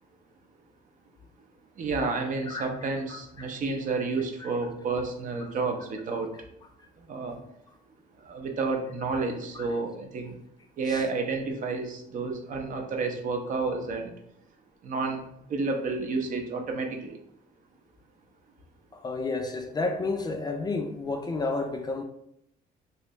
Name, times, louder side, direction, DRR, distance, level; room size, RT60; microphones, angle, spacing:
voice 1, 1.8-6.3 7.1-7.4 8.2-10.4 10.8-14.1 14.8-15.2 15.5-17.2, right 4 dB, 50° right, 0.6 m, -30 dB
voice 2, 3.1-3.5 4.4-4.5 9.6-9.7 10.9-11.0 18.9-22.0, left 3 dB, 25° left, 0.4 m, -31 dB
3.2 x 2.6 x 3.0 m
cardioid pair, 110°, 17 cm